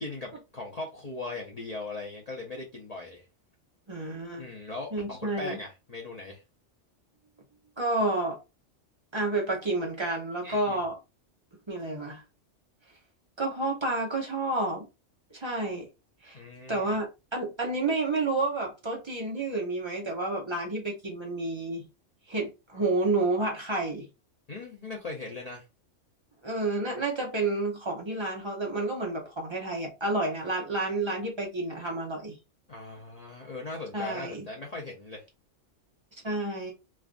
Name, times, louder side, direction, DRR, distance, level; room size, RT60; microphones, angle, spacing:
voice 1, 0.0-3.3 4.4-6.4 10.4-10.8 16.3-16.9 24.5-25.6 32.7-35.2, left 2 dB, 40° left, 0.7 m, -39 dB
voice 2, 3.9-4.5 4.9-5.6 7.8-8.4 9.1-11.0 11.7-12.2 13.4-14.9 15.3-15.9 16.2-16.4 16.7-21.9 22.3-24.1 26.4-32.4 33.9-34.4 36.2-36.7, right 2 dB, 25° right, 0.8 m, -30 dB
3.3 x 2.4 x 2.5 m
omnidirectional pair, 1.3 m